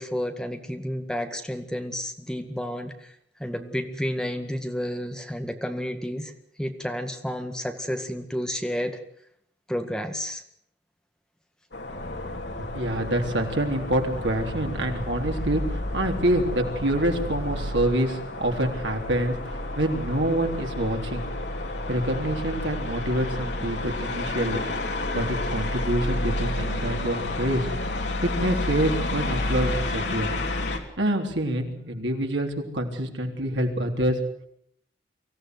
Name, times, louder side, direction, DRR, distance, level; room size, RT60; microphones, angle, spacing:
voice 1, 0.0-3.1 3.4-6.3 6.6-9.0 9.7-10.4, equal, 5° left, 5 dB, 1.8 m, -31 dB
sound 1, 11.7-30.8, left 1 dB, 70° left, 3.1 m, -30 dB
voice 2, 12.7-21.2 21.9-24.7 25.1-28.0 28.2-30.3 31.0-34.2, right 1 dB, 85° right, 3 dB, 3.6 m, -26 dB
24.5 x 16.0 x 8.0 m, 0.68 s
head